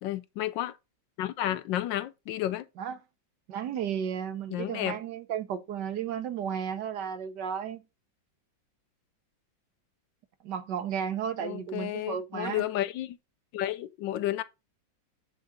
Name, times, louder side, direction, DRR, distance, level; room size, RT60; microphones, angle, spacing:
voice 1, 0.0-0.8 1.2-2.7 4.5-5.0 11.4-13.2 13.5-14.4, left 13 dB, 80° left, 1.3 m, -32 dB
voice 2, 3.5-7.8 10.4-12.7, right 8 dB, 70° right, 1.4 m, -33 dB
8.4 x 3.8 x 5.1 m
omnidirectional pair, 2.0 m